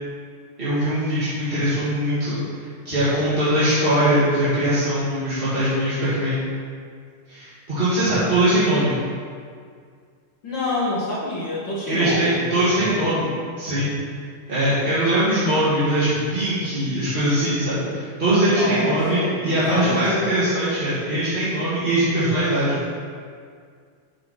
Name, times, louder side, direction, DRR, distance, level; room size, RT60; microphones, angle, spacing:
voice 1, 0.6-2.4 2.8-6.4 7.3-8.9 11.9-13.9 14.5-22.8, right 1 dB, 25° right, -13 dB, 1.4 m, -21 dB
voice 2, 10.4-12.5 18.5-20.0, left 1 dB, 55° left, -7 dB, 1.3 m, -27 dB
8.3 x 5.7 x 4.3 m, 2.1 s
omnidirectional pair, 3.7 m